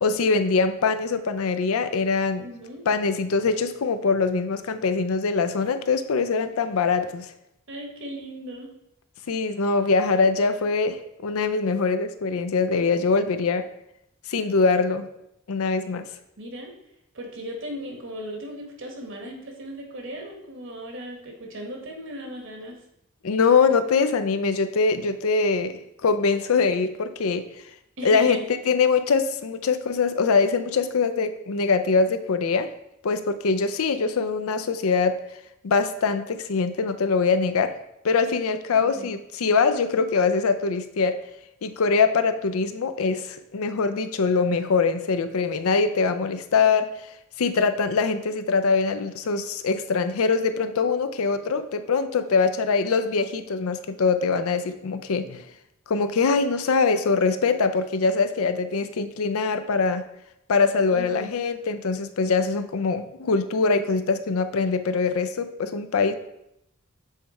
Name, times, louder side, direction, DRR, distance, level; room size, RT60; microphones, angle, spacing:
voice 1, 0.0-2.5 2.9-7.3 9.3-13.6 14.3-15.1 15.5-16.0 23.2-27.5 28.0-28.4 28.7-32.7 33.0-35.2 35.6-37.7 38.0-41.2 41.6-46.9 47.4-55.4 55.9-60.0 60.5-66.1, left 4 dB, 75° left, 10 dB, 0.5 m, -23 dB
voice 2, 2.4-2.8 7.7-8.7 16.4-16.7 17.1-22.8 28.0-28.5 38.7-39.1 60.9-61.3, equal, 60° right, 1 dB, 1.2 m, -37 dB
7.4 x 3.4 x 4.2 m, 0.81 s
head